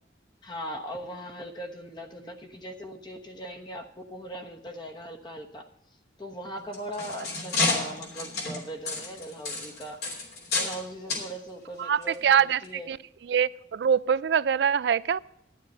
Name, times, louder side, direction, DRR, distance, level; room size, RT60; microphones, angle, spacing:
voice 1, 0.4-5.7 6.2-10.0 10.5-12.9, equal, 25° left, 1.1 m, -39 dB
sound 1, 6.6-10.8 11.1-11.3 12.0-12.1 12.6-12.7, left 3 dB, 60° left, 3.0 m, -30 dB
voice 2, 11.8-12.6 12.9-13.0 13.3-15.2, right 8 dB, 75° right, 0.3 m, -24 dB
12.5 x 10.0 x 4.3 m
head